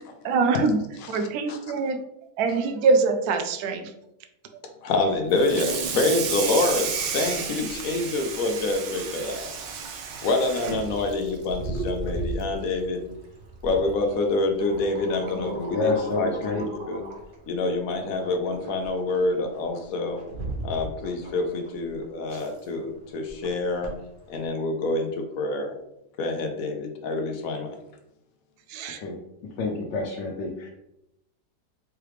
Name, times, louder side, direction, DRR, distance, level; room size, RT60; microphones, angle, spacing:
voice 1, 0.2-0.8 1.1-2.0 2.4-3.9 28.7-29.0, right 4 dB, 70° right, 7 dB, 1.0 m, -23 dB
voice 2, 1.1-1.6 4.8-9.5 10.2-13.0 13.6-15.9 16.2-16.3 16.9-17.0 17.5-20.2 20.6-23.9 24.3-25.7 26.2-27.8, left 2 dB, 65° left, 4 dB, 1.0 m, -26 dB
Water tap faucet / Sink (filling or washing), 5.3-12.0 12.4-12.6 13.0-13.1 13.5-13.6 14.7-14.8 15.3-15.5, right 6 dB, 85° right, 1.4 m, -32 dB
sound 1, 5.7-24.5, right 1 dB, 40° right, 0.8 m, -39 dB
voice 3, 15.7-16.6 29.0-29.1 29.6-30.7, left 3 dB, 85° left, 0 dB, 1.3 m, -28 dB
4.7 x 3.3 x 3.1 m, 0.82 s
omnidirectional pair, 1.8 m